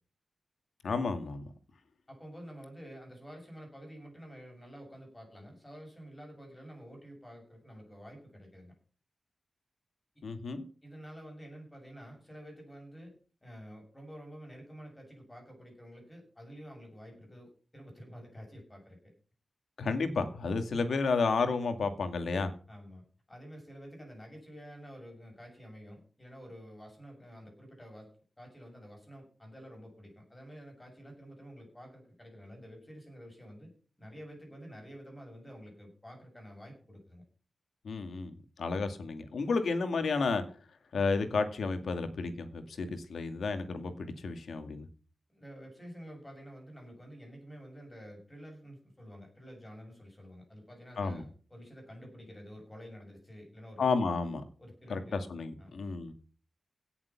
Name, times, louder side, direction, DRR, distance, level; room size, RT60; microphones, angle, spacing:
voice 1, 0.8-1.4 10.2-10.7 19.8-22.5 37.8-40.4 40.9-44.9 51.0-51.2 53.8-54.4 54.9-56.1, left 4 dB, 75° left, 8 dB, 2.2 m, -32 dB
voice 2, 2.1-8.7 10.8-13.1 13.4-19.1 19.9-20.1 22.7-33.7 34.0-37.2 45.3-53.9 54.6-55.2 55.6-55.8, equal, 15° left, 1 dB, 7.2 m, -49 dB
17.0 x 7.2 x 5.9 m, 0.39 s
wide cardioid pair, 155°, 0 cm